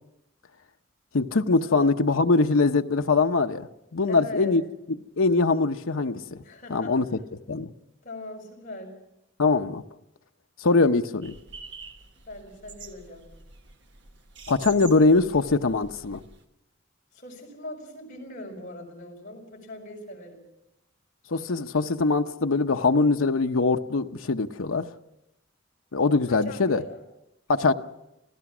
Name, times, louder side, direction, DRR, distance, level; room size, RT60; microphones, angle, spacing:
voice 1, 1.1-4.6 5.2-6.4 6.7-7.1 7.5-7.7 9.4-9.8 10.6-11.4 14.5-16.2 21.3-24.9 25.9-26.8 27.5-27.7, left 3 dB, 85° left, 0.8 m, -22 dB
voice 2, 4.1-4.6 6.4-7.0 8.0-8.9 12.3-13.3 17.1-20.4 26.3-27.0, left 1 dB, 40° left, 5.5 m, -40 dB
sound 1, 11.2-16.4, right 4 dB, 60° right, 1.5 m, -46 dB
26.5 x 16.5 x 6.1 m
head